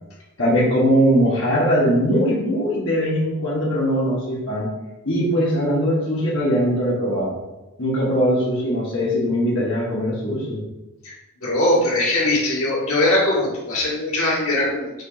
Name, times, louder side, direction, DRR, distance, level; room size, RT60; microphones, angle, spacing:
voice 1, 0.4-4.7 5.1-7.3 7.8-10.6, equal, 55° left, -7 dB, 1.7 m, -20 dB
voice 2, 11.4-15.0, left 1 dB, 75° left, -5 dB, 2.0 m, -21 dB
6.5 x 3.7 x 5.0 m, 1.0 s
head